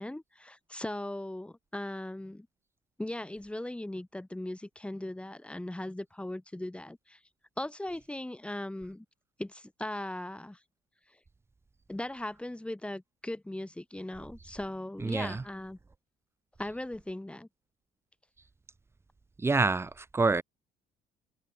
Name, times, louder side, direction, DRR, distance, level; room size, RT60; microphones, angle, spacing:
voice 1, 0.0-2.5 3.0-7.2 7.6-9.1 9.4-10.6 11.9-15.8 16.6-17.5, left 1 dB, 5° left, 2.0 m, -38 dB
voice 2, 15.0-15.4 19.4-20.4, right 3 dB, 15° right, 0.5 m, -27 dB
cardioid pair, 110°, 17 cm